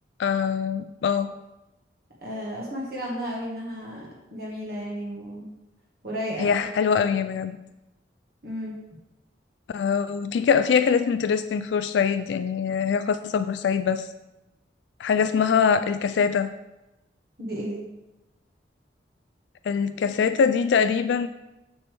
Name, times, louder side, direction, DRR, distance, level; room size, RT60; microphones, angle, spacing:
voice 1, 0.2-1.3 6.4-7.6 9.7-14.1 15.0-16.5 19.7-21.3, left 6 dB, 80° left, 11 dB, 0.3 m, -23 dB
voice 2, 2.2-5.5 6.0-6.7 8.4-8.7 15.2-15.3 17.4-17.8, equal, 55° right, -4 dB, 1.7 m, -33 dB
6.9 x 6.8 x 3.4 m, 0.97 s
head